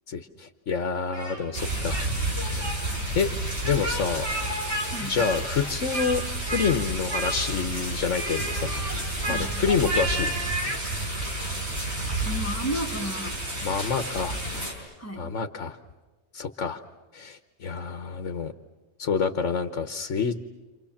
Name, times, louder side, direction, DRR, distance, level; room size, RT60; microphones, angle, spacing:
voice 1, 0.1-2.1 2.5-2.7 3.1-3.3 3.6-4.3 5.0-6.2 6.5-10.3 13.6-14.4 15.2-15.8 16.3-16.8 17.1-18.5 19.0-20.4, left 6 dB, 75° left, 8 dB, 1.4 m, -28 dB
Speech, 1.1-2.1 2.4-2.8 3.6-4.9 5.2-6.2 6.5-6.8 7.1-7.7 8.1-10.8, right 1 dB, 80° right, 4.9 m, -32 dB
sound 1, 1.5-14.7, right 1 dB, 60° right, 5.8 m, -31 dB
voice 2, 9.3-9.6 12.2-13.4 15.0-15.3, right 1 dB, 10° left, 1 dB, 2.1 m, -33 dB
29.0 x 27.5 x 7.2 m, 1.2 s
omnidirectional pair, 1.3 m